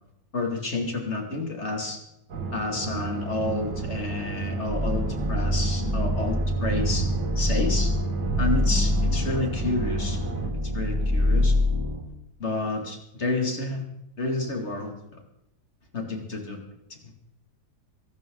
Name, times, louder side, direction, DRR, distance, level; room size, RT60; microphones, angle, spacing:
voice 1, 0.3-2.0 2.5-7.1 7.4-7.9 8.4-10.2 10.7-11.5 12.4-13.8 14.2-14.9 15.9-16.6 16.9-17.0, left 2 dB, 35° left, 3 dB, 2.6 m, -29 dB
sound 1, 2.3-10.5, right 4 dB, 70° right, 2.3 m, -31 dB
sound 2, 4.7-12.0, left 2 dB, 15° right, 2.3 m, -26 dB
22.5 x 12.5 x 3.9 m, 0.83 s
omnidirectional pair, 2.0 m